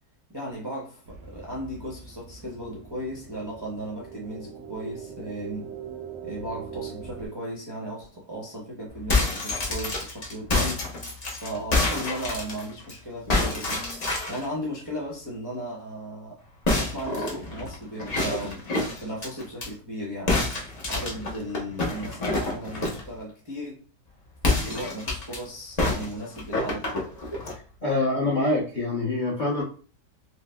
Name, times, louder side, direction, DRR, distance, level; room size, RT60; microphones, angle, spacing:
voice 1, 0.3-5.7 6.2-10.9 11.4-13.8 14.3-16.4 16.7-18.6 19.0-20.5 20.9-23.8 24.4-27.0, equal, 35° right, -6 dB, 0.4 m, -36 dB
sound 1, 1.1-7.3, right 6 dB, 80° right, 1.3 m, -41 dB
sound 2, 8.9-12.9 13.3-14.5 16.6-19.7 20.3-23.1 24.4-25.4 25.8-27.6, left 2 dB, 60° left, 0.4 m, -27 dB
voice 2, 27.8-29.6, left 2 dB, 40° left, -5 dB, 0.8 m, -25 dB
4.5 x 2.0 x 2.2 m, 0.40 s
omnidirectional pair, 1.9 m